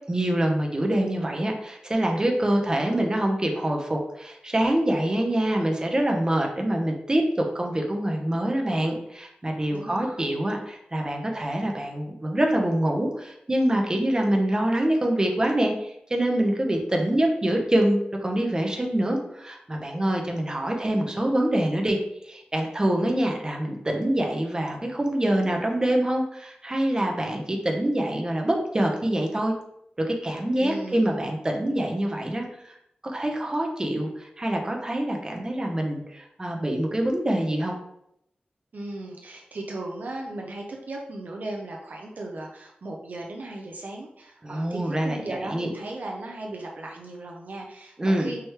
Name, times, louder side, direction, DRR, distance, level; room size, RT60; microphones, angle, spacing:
voice 1, 0.1-22.0 22.2-29.5 30.0-32.4 33.0-37.8 44.4-45.7 48.0-48.3, right 1 dB, 25° right, 1 dB, 0.8 m, -25 dB
voice 2, 9.7-10.3 30.6-31.1 38.7-48.4, right 2 dB, 60° right, 1 dB, 0.6 m, -37 dB
4.6 x 3.1 x 3.3 m, 0.76 s
wide cardioid pair, 80°, 3 cm